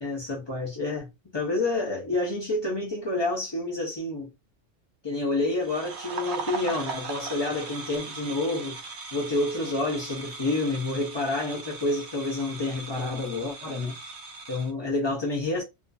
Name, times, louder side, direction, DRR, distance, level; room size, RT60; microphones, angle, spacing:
voice 1, 0.0-1.1 1.3-4.3 5.0-14.0 14.5-15.6, left 2 dB, 45° left, 0.3 m, -29 dB
sound 1, 5.6-14.7, right 4 dB, 65° right, 0.8 m, -38 dB
2.4 x 2.4 x 2.2 m
omnidirectional pair, 1.3 m